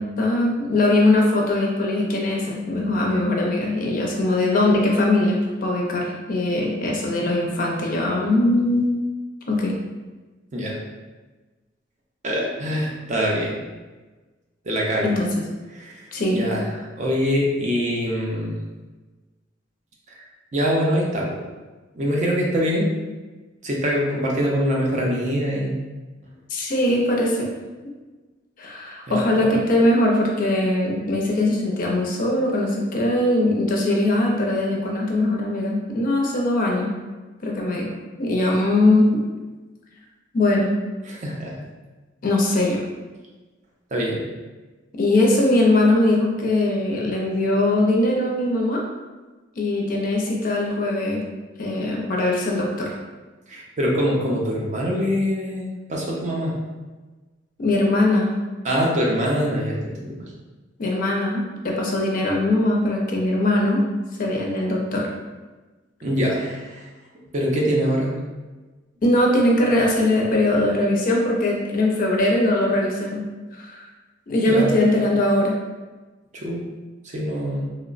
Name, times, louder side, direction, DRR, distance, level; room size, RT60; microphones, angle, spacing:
voice 1, 0.0-9.1 9.5-9.7 15.0-15.4 16.1-16.4 26.5-27.5 28.6-36.9 37.4-37.9 38.2-39.1 40.3-40.8 42.2-42.8 45.0-48.8 49.6-51.2 51.6-52.9 57.6-58.3 60.8-63.8 64.2-65.1 69.0-73.3 73.5-73.9 74.3-75.6, left 1 dB, 45° left, -1 dB, 0.5 m, -21 dB
voice 2, 12.2-13.6 14.7-15.1 15.7-15.9 16.3-16.6 17.0-18.6 20.1-20.2 20.5-21.4 21.9-22.9 23.6-25.7 29.1-29.5 41.1-41.6 43.9-44.2 53.5-56.6 58.6-60.3 66.0-66.8 67.3-68.1 74.5-74.7 76.3-76.6 77.0-77.7, equal, 40° right, -2 dB, 0.5 m, -24 dB
2.9 x 2.0 x 2.4 m, 1.2 s
head